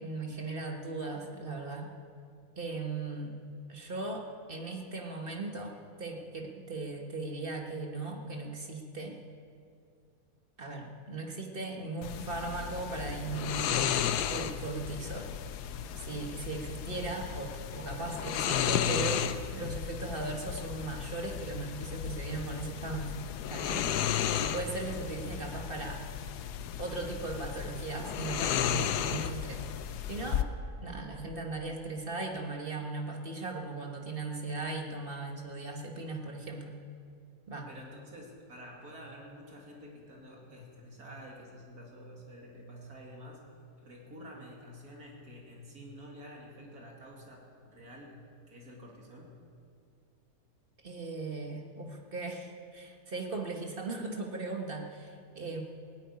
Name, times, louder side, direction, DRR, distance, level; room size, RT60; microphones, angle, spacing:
voice 1, 0.0-1.9 2.6-3.4 3.7-9.2 10.6-13.9 14.3-15.3 15.9-23.9 24.4-26.0 26.8-29.6 30.1-30.5 30.8-36.8 37.5-37.7 50.8-55.6, right 3 dB, 35° right, 2 dB, 1.5 m, -38 dB
sound 1, 12.0-30.4, left 9 dB, 90° left, 1.2 m, -34 dB
voice 2, 37.7-43.4 43.8-48.2 48.5-49.4, equal, 70° right, -1 dB, 2.9 m, -49 dB
17.0 x 8.8 x 9.5 m, 2.3 s
omnidirectional pair, 1.7 m